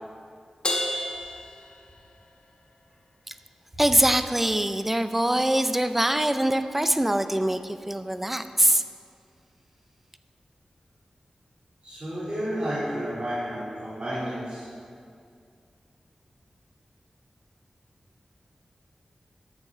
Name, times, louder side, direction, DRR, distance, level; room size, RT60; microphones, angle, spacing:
Crash cymbal, 0.6-2.4, left 1 dB, 45° left, 1.0 m, -31 dB
voice 1, 3.8-8.8, right 1 dB, 10° right, 10 dB, 0.4 m, -23 dB
voice 2, 11.8-14.7, equal, 45° right, -10 dB, 2.6 m, -31 dB
13.0 x 5.6 x 4.5 m, 2.3 s
wide cardioid pair, 90°, 2 cm